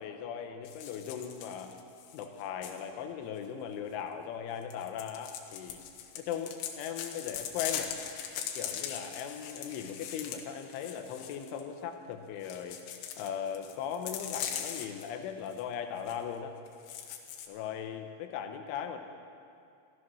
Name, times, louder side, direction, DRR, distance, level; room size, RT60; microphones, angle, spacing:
voice 1, 0.0-1.7 2.1-5.8 6.2-8.0 8.6-12.8 13.2-16.6 17.5-19.0, left 8 dB, 90° left, 5 dB, 3.3 m, -38 dB
sound 1, 0.7-2.8 4.6-11.6 12.4-15.1 15.5-15.6 16.0-16.2 16.7-17.5, left 9 dB, 70° left, 2.9 m, -40 dB
15.5 x 14.0 x 6.2 m, 2.5 s
omnidirectional pair, 5.4 m